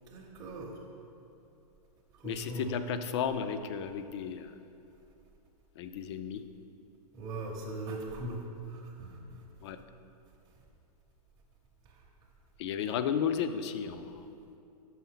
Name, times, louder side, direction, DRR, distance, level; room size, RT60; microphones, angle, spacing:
voice 1, 0.1-0.8 2.2-2.8 7.1-8.4 8.7-9.4, right 2 dB, 20° right, -4 dB, 0.8 m, -40 dB
voice 2, 2.2-4.5 5.8-6.4 9.6-9.8 12.6-14.2, left 8 dB, 45° left, 10 dB, 0.4 m, -33 dB
5.7 x 5.6 x 5.6 m, 2.7 s
hypercardioid pair, 140°, 20 cm